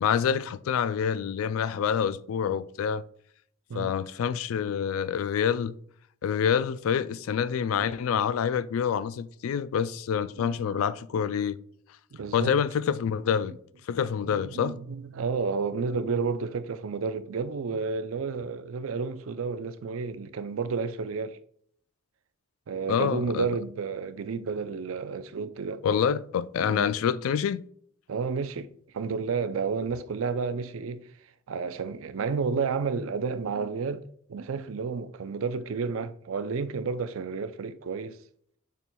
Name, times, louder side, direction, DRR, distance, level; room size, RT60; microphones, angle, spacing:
voice 1, 0.0-3.1 3.8-5.8 6.2-11.6 12.3-13.6 13.9-14.8 22.9-23.5 25.8-27.6, left 7 dB, 90° left, 0.3 m, -27 dB
voice 2, 10.4-10.9 12.2-12.6 14.0-21.4 22.7-25.8 26.6-26.9 28.1-31.1 31.5-34.0 34.3-38.2, right 5 dB, 80° right, 0.5 m, -31 dB
6.9 x 6.0 x 2.2 m
head